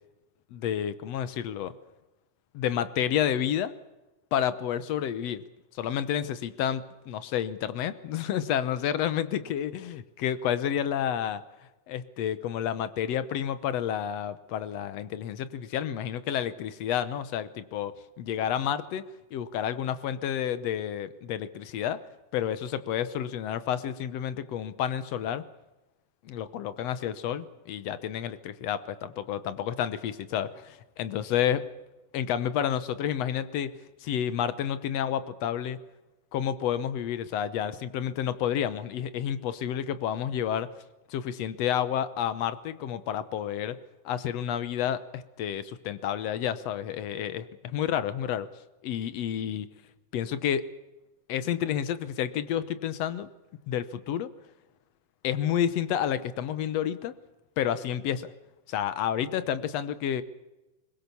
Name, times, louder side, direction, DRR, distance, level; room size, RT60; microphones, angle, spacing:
voice 1, 0.5-1.7 2.5-3.7 4.3-5.4 5.7-11.4 11.9-19.0 19.3-22.0 22.3-25.4 26.3-31.7 32.1-33.7 34.0-35.8 36.3-40.7 41.1-43.8 44.1-48.5 48.8-49.7 50.1-50.7 51.3-53.3 53.7-54.3 55.2-57.1 57.6-58.3 58.7-60.2, left 9 dB, 65° left, 14 dB, 1.8 m, -30 dB
22.5 x 21.0 x 7.0 m, 1.0 s
omnidirectional pair, 3.7 m